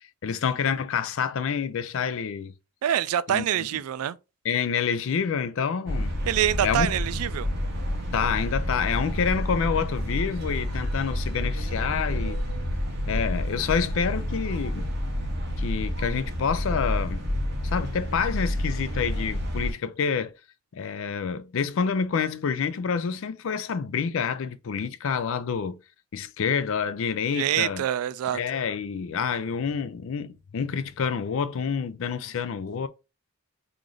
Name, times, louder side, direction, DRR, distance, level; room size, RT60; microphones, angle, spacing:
voice 1, 0.2-2.5 3.3-3.4 4.4-6.1 6.6-6.9 8.1-12.4 13.1-14.9 15.6-17.2 17.6-20.3 20.7-25.8 26.1-27.8 28.3-32.9, left 6 dB, 60° left, 0.4 m, -28 dB
voice 2, 2.8-4.2 6.3-7.5 27.3-28.4, right 10 dB, 80° right, 0.3 m, -25 dB
sound 1, 5.9-19.7, equal, 50° right, 1.1 m, -29 dB
3.1 x 2.5 x 3.7 m
head